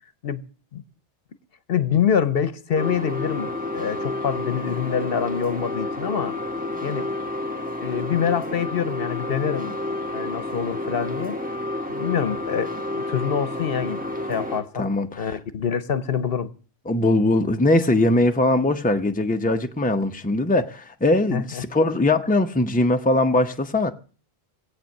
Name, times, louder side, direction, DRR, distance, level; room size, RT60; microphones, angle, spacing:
voice 1, 1.7-6.4 6.8-7.1 7.8-9.7 10.1-11.4 11.9-14.0 14.3-14.9 15.2-16.5 21.3-21.6, left 7 dB, 65° left, 1.0 m, -25 dB
sound 1, 2.7-14.6, left 2 dB, 10° right, 1.3 m, -30 dB
voice 2, 14.7-15.3 16.9-23.9, left 2 dB, 10° left, 0.8 m, -21 dB
18.5 x 8.4 x 6.5 m
omnidirectional pair, 1.1 m